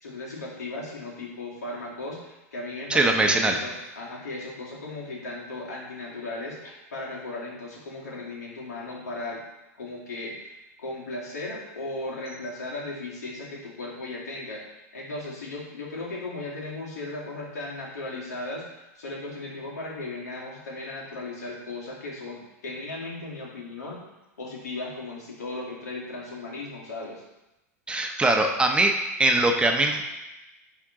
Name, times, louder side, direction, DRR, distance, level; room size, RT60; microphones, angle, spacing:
voice 1, 0.0-9.4 9.8-14.6 14.9-18.7 19.0-24.0 24.4-27.2, left 2 dB, 85° left, -4 dB, 2.2 m, -36 dB
voice 2, 2.9-3.5 27.9-28.9 29.2-30.2, right 2 dB, 10° right, 3 dB, 0.9 m, -22 dB
10.0 x 3.7 x 3.8 m, 0.98 s
hypercardioid pair, 100°, 8 cm